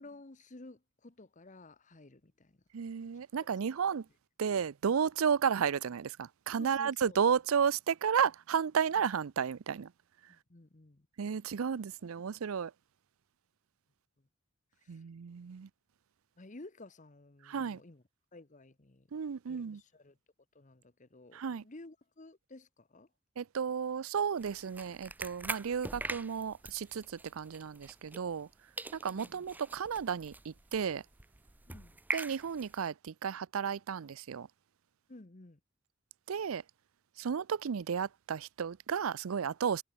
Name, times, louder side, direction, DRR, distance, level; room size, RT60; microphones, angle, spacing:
voice 1, 0.0-2.6 3.4-3.7 6.6-7.2 9.0-9.1 10.3-11.1 14.8-15.0 16.4-18.0 18.3-19.1 19.5-20.2 20.5-23.1 29.1-29.4 31.7-32.0 35.1-35.6, left 2 dB, 35° left, 1.1 m, -53 dB
voice 2, 2.7-4.0 4.4-9.9 11.2-12.7 14.9-15.7 17.5-17.8 19.1-19.8 21.3-21.6 23.4-28.5 28.9-31.0 32.1-34.5 36.3-36.6 37.2-39.8, right 7 dB, 80° right, 0.5 m, -33 dB
sound 1, 24.4-28.5 28.8-32.9, right 2 dB, 10° right, 0.4 m, -43 dB
head